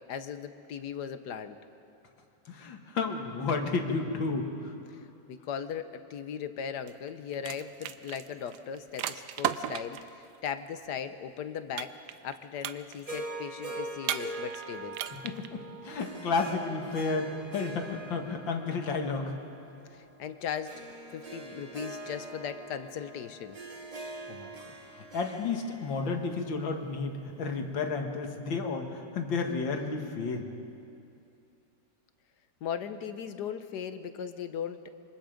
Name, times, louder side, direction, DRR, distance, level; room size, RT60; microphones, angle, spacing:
voice 1, 0.1-1.6 5.3-11.9 12.2-15.0 20.2-20.8 21.1-23.6 32.6-34.9, left 8 dB, 65° left, 10 dB, 1.3 m, -38 dB
voice 2, 2.5-4.7 15.2-19.3 24.3-24.5 25.1-30.5, left 4 dB, 80° left, 4 dB, 2.3 m, -32 dB
sound 1, 6.9-7.1 7.3-10.1 11.8-12.3 12.6-13.2 14.0-14.6 14.9-15.5, right 10 dB, 70° right, 1.2 m, -34 dB
Harp, 13.1-27.4, right 2 dB, 30° right, 0.8 m, -43 dB
26.0 x 24.0 x 5.2 m, 2.6 s
omnidirectional pair, 2.0 m